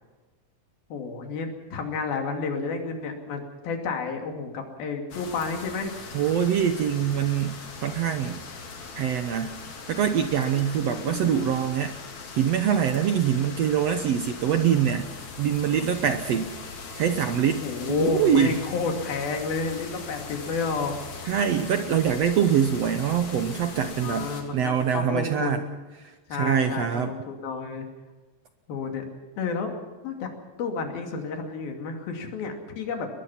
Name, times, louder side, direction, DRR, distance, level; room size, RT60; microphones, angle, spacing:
voice 1, 0.9-5.9 10.8-11.5 17.6-20.9 24.0-25.8 26.3-27.9 28.7-29.0 29.4-29.7 30.0-30.3 30.6-33.1, left 4 dB, 75° left, 3 dB, 4.5 m, -31 dB
sound 1, 5.1-24.4, left 4 dB, 55° left, 4.0 m, -40 dB
voice 2, 6.1-8.4 9.0-9.5 9.9-11.9 12.4-15.0 15.4-16.5 17.0-18.5 21.2-25.6 26.3-27.1, right 8 dB, 75° right, 8 dB, 1.5 m, -24 dB
22.0 x 21.0 x 5.9 m, 1.2 s
omnidirectional pair, 4.2 m